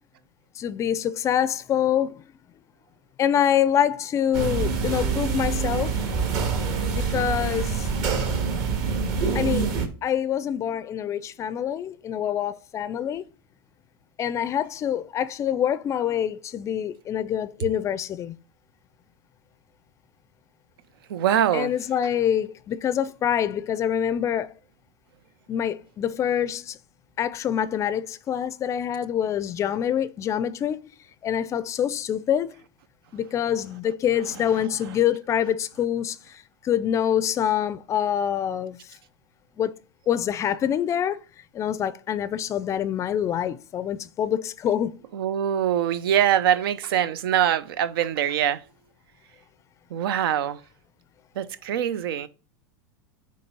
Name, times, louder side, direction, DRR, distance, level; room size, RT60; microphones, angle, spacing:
voice 1, 0.6-2.1 3.2-5.9 6.9-7.9 9.3-9.7 10.0-13.2 14.2-18.4 21.5-24.5 25.5-26.8 27.2-30.8 31.2-32.5 33.1-36.2 36.6-38.8 39.6-39.7 40.1-41.2 41.5-44.9, left 9 dB, 25° left, 0.4 m, -25 dB
sound 1, 4.3-9.9, right 5 dB, 55° right, 1.8 m, -25 dB
voice 2, 21.1-21.7 34.2-35.0 45.1-48.6 49.9-50.6 51.3-52.3, right 10 dB, 80° right, 0.7 m, -24 dB
8.5 x 3.2 x 5.4 m
supercardioid pair, 140°, 12 cm